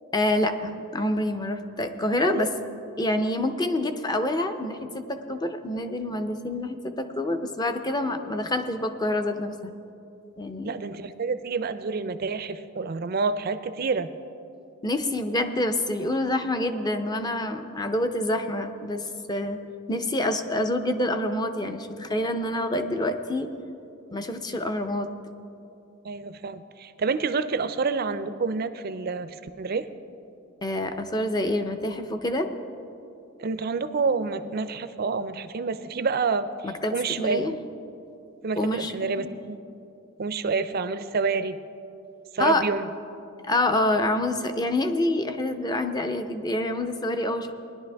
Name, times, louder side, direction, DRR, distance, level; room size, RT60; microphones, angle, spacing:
voice 1, 0.1-2.5 3.0-9.7 10.4-10.7 14.8-19.0 19.3-19.6 19.9-23.5 24.1-25.1 30.6-32.5 36.6-37.5 38.6-39.3 42.4-42.6 43.4-47.5, left 1 dB, 20° left, 7 dB, 0.6 m, -27 dB
voice 2, 10.6-14.1 26.0-29.9 33.4-37.6 38.4-39.6 40.2-41.6 42.3-42.9, right 4 dB, 45° right, 12 dB, 0.4 m, -28 dB
19.5 x 11.0 x 3.4 m, 2.7 s
head